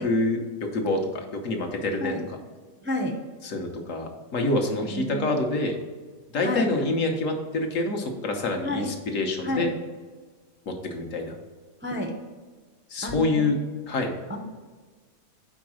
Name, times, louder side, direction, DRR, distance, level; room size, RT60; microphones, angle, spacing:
voice 1, 0.0-2.1 3.4-5.8 6.3-9.7 10.9-11.3 12.9-13.6 13.9-14.1, left 2 dB, 65° left, 3 dB, 1.3 m, -26 dB
voice 2, 2.8-3.1 4.9-5.3 6.4-6.9 8.6-8.9 9.4-9.7 11.8-12.1 13.0-13.4 14.3-14.4, left 1 dB, 15° right, 1 dB, 0.4 m, -30 dB
5.2 x 4.7 x 6.1 m, 1.4 s
omnidirectional pair, 1.5 m